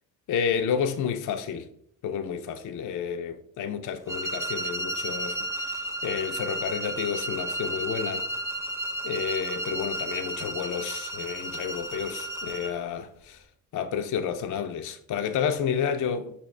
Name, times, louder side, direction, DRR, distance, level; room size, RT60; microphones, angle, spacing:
voice 1, 0.3-1.7 2.0-8.3 9.0-13.4 13.7-16.3, left 7 dB, 40° left, 0.4 m, -30 dB
sound 1, 4.1-12.8, right 1 dB, 5° right, 0.6 m, -33 dB
5.3 x 2.7 x 3.2 m
hypercardioid pair, 45°, 48 cm